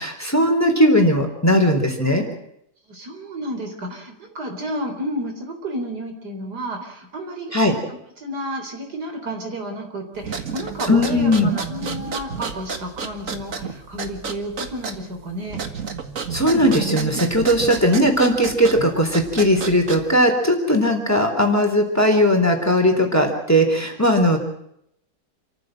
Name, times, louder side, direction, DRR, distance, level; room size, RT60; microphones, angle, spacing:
voice 1, 0.0-2.2 7.5-7.7 10.9-11.5 16.3-24.4, equal, 10° left, 3 dB, 3.6 m, -18 dB
voice 2, 2.9-7.8 8.2-15.6, right 1 dB, 70° right, 4 dB, 4.3 m, -31 dB
sound 1, 10.2-20.3, right 5 dB, 50° right, 2.0 m, -31 dB
28.5 x 14.5 x 7.8 m, 0.76 s
omnidirectional pair, 1.8 m